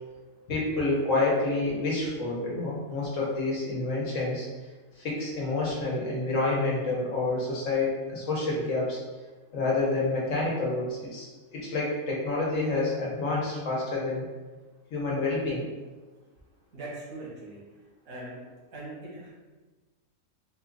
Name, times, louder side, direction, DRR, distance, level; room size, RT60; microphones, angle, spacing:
voice 1, 0.5-4.5 5.0-9.0 9.5-14.2 14.9-15.6, left 2 dB, 70° left, -4 dB, 1.4 m, -28 dB
voice 2, 16.7-17.6 18.1-18.4 18.7-19.3, right 2 dB, 85° right, -5 dB, 1.7 m, -40 dB
4.1 x 2.4 x 3.8 m, 1.3 s
omnidirectional pair, 1.4 m